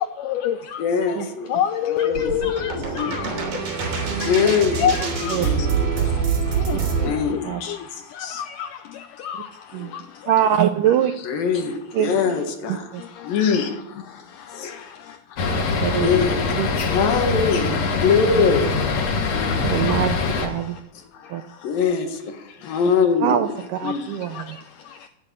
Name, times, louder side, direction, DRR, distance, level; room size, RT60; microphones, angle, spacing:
voice 1, 0.8-1.5 1.9-2.4 2.9-3.1 4.2-4.8 5.4-5.7 6.0-6.1 7.0-7.8 8.2-8.4 11.2-12.8 13.2-14.0 14.5-14.9 16.0-18.9 19.3-19.5 21.6-23.5 23.8-24.1, left 5 dB, 65° left, 3.3 m, -23 dB
voice 2, 1.5-2.7 3.0-3.2 4.8-5.4 6.7-6.8 9.3-9.4, left 9 dB, 90° left, 1.8 m, -23 dB
sound 1, 2.1-7.1, right 6 dB, 60° right, 4.8 m, -25 dB
sound 2, 3.0-7.3, right 4 dB, 40° right, 2.6 m, -35 dB
voice 3, 10.3-11.1 11.9-12.1 12.7-13.0 15.5-16.1 16.6-16.7 18.2-18.4 19.6-20.8 21.3-21.4 23.2-24.6, right 10 dB, 85° right, 1.9 m, -23 dB
sound 3, 15.4-20.5, left 4 dB, 50° left, 2.3 m, -23 dB
16.5 x 8.6 x 8.6 m
omnidirectional pair, 4.5 m